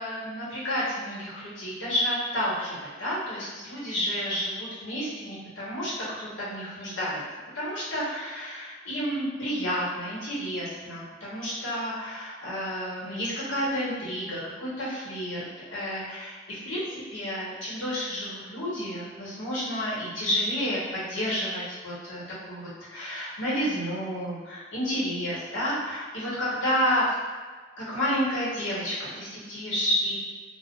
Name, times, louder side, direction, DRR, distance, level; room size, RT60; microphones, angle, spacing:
voice 1, 0.0-5.9 6.2-7.2 7.5-15.4 15.7-22.2 22.5-27.0 27.8-30.1, equal, 80° left, -7 dB, 1.1 m, -30 dB
2.4 x 2.3 x 3.6 m, 1.4 s
head